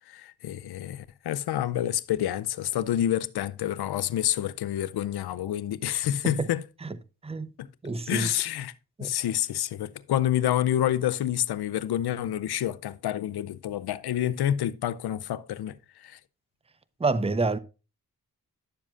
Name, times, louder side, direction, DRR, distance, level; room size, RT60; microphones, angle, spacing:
voice 1, 0.1-6.6 7.6-7.7 8.1-8.7 9.0-16.2, left 12 dB, 85° left, 0.6 m, -28 dB
voice 2, 7.8-8.3 9.0-9.1 17.0-17.6, right 3 dB, 15° right, 0.7 m, -27 dB
11.0 x 7.3 x 2.4 m
cardioid pair, 45°, 37 cm